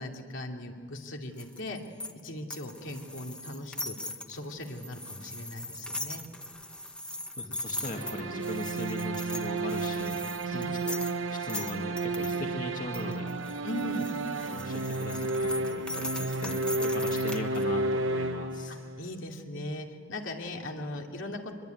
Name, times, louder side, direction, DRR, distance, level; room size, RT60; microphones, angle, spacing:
voice 1, 0.0-1.8 2.2-4.0 4.3-6.2 10.0-10.1 10.5-10.7 13.6-14.1 18.7-21.6, left 1 dB, 70° left, 1 dB, 2.9 m, -39 dB
sound 1, 1.4-12.4 12.9-17.6, left 1 dB, 5° left, 1.3 m, -40 dB
voice 2, 7.4-10.1 10.5-11.0 11.3-13.3 14.4-18.8, left 2 dB, 45° left, 1 dB, 2.1 m, -39 dB
sound 2, 7.9-19.1, right 2 dB, 70° right, 0.9 m, -32 dB
25.0 x 22.5 x 9.4 m, 2.1 s
head